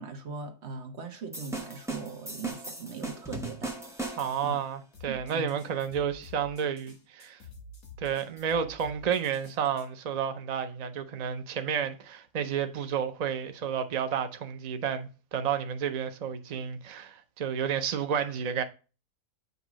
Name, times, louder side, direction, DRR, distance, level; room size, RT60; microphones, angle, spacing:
voice 1, 0.0-4.6 5.1-5.5, right 4 dB, 50° right, 1.2 m, -40 dB
sound 1, 1.3-4.5, right 2 dB, 5° right, 0.7 m, -38 dB
voice 2, 4.2-7.4 8.0-18.6, right 7 dB, 85° right, 0.3 m, -31 dB
sound 2, 4.9-9.9, left 1 dB, 70° left, 1.8 m, -49 dB
8.0 x 2.7 x 6.0 m
omnidirectional pair, 1.6 m